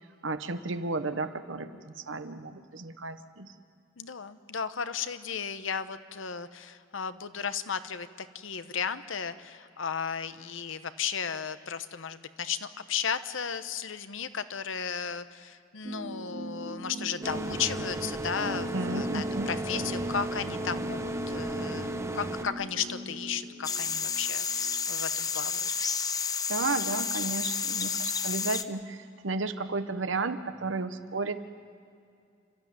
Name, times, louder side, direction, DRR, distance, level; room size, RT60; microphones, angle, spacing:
voice 1, 0.2-3.5 18.7-19.5 26.5-31.4, right 3 dB, 70° right, 10 dB, 1.1 m, -33 dB
voice 2, 4.0-25.7, left 7 dB, 75° left, 12 dB, 0.9 m, -35 dB
sound 1, 15.8-24.7, equal, 50° right, 2.0 m, -39 dB
sound 2, 17.2-22.5, right 2 dB, 15° right, 0.9 m, -35 dB
sound 3, 23.6-28.6, left 6 dB, 20° left, 0.6 m, -31 dB
29.5 x 13.0 x 9.4 m, 2.3 s
head